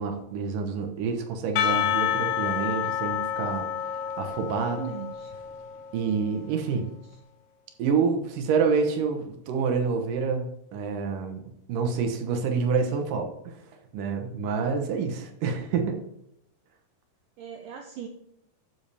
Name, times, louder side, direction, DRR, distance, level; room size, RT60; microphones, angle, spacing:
voice 1, 0.0-4.8 5.9-6.8 7.8-11.4 11.7-13.6 13.9-16.0, right 5 dB, 70° right, 5 dB, 2.2 m, -28 dB
Percussion / Church bell, 1.6-6.1, left 10 dB, 80° left, 2.8 m, -29 dB
voice 2, 4.2-5.3 6.3-6.9 17.4-18.1, right 8 dB, 90° right, 3 dB, 1.8 m, -41 dB
12.5 x 7.1 x 3.4 m, 0.79 s
omnidirectional pair, 4.7 m